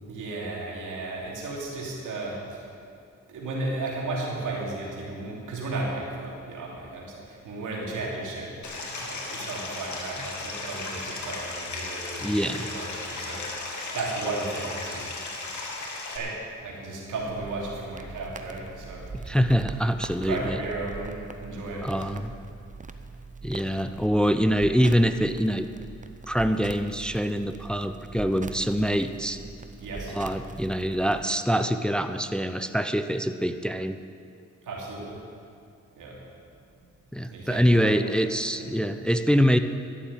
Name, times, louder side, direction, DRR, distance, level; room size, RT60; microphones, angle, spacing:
voice 1, 0.1-2.7 3.3-15.1 16.1-19.1 20.2-22.2 29.8-30.1 34.6-35.2 36.0-36.2 37.3-38.1 38.6-38.8, right 2 dB, 90° right, -3 dB, 2.8 m, -34 dB
Stream, 8.6-16.2, left 3 dB, 70° left, 2.2 m, -35 dB
voice 2, 12.2-12.7 19.1-20.6 21.8-22.3 23.4-25.7 26.3-29.4 30.1-34.0 37.1-39.6, equal, 5° left, 9 dB, 0.6 m, -24 dB
sound 1, 17.2-31.2, right 4 dB, 25° right, 0.9 m, -42 dB
12.5 x 7.3 x 9.2 m, 2.4 s
cardioid pair, 60°, 30 cm